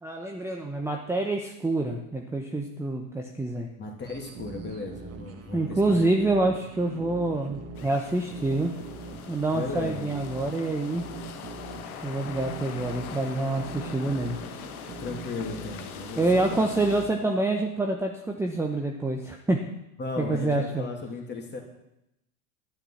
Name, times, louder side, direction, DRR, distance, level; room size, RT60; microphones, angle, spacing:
voice 1, 0.0-3.7 5.5-8.7 9.3-11.0 12.0-14.4 16.2-19.6 20.2-20.9, right 2 dB, 5° right, 2 dB, 0.9 m, -27 dB
voice 2, 3.8-6.1 9.5-10.1 15.0-16.2 16.5-16.6 20.0-21.6, left 3 dB, 25° left, 1 dB, 2.7 m, -35 dB
sound 1, 4.0-17.3, right 5 dB, 35° right, 1.8 m, -42 dB
sound 2, 7.8-17.0, left 9 dB, 80° left, 1.2 m, -42 dB
11.5 x 9.4 x 5.8 m, 0.85 s
hypercardioid pair, 100°, 43 cm